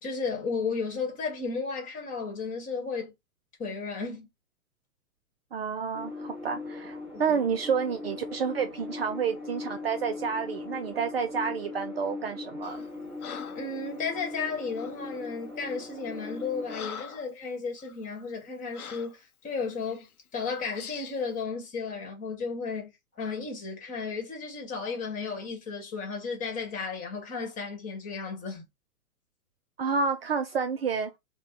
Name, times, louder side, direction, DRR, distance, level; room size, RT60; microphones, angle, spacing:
voice 1, 0.0-3.1 3.6-4.3 7.3-7.4 13.5-22.9 23.2-28.6, left 5 dB, 20° left, 1.2 m, -34 dB
voice 2, 5.5-12.8 29.8-31.1, right 6 dB, 45° right, 0.4 m, -29 dB
sound 1, 5.9-16.8, left 3 dB, 5° right, 0.9 m, -40 dB
Breathing, 12.6-12.9 13.2-13.7 14.7-15.0 15.7-15.9 16.3-17.3 17.8-18.0 18.7-19.1 19.9-20.1 20.7-21.2, left 7 dB, 80° left, 0.7 m, -43 dB
3.5 x 2.1 x 3.4 m
figure-of-eight pair, 120°, 44 cm